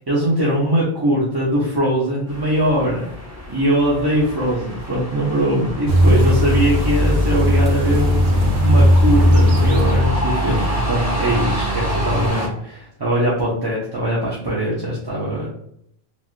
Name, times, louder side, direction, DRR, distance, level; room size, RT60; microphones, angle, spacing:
voice 1, 0.1-3.1 3.5-15.5, equal, 30° right, -7 dB, 0.6 m, -21 dB
sound 1, 2.3-12.5, equal, 15° left, 0.7 m, -30 dB
sound 2, 5.9-10.2, equal, 75° right, 0.9 m, -16 dB
sound 3, 6.8-12.3, right 1 dB, 50° left, 0.9 m, -26 dB
3.2 x 2.5 x 2.4 m, 0.70 s
omnidirectional pair, 1.0 m